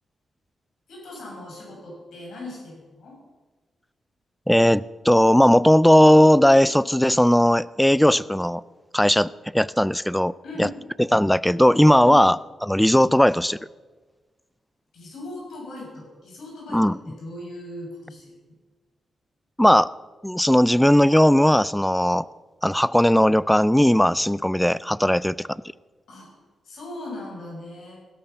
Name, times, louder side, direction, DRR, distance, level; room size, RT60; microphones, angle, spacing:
voice 1, 0.9-3.1 10.4-10.8 12.0-12.2 14.9-18.4 26.1-26.3 26.6-28.0, left 2 dB, 80° left, -3 dB, 6.7 m, -38 dB
voice 2, 4.5-8.6 8.9-10.3 10.6-10.7 11.1-12.4 12.6-13.6 16.7-16.9 19.6-19.9 20.2-22.3 22.6-25.6, equal, 5° left, 19 dB, 0.4 m, -17 dB
16.5 x 13.0 x 5.6 m, 1.3 s
cardioid pair, 100°, 0 cm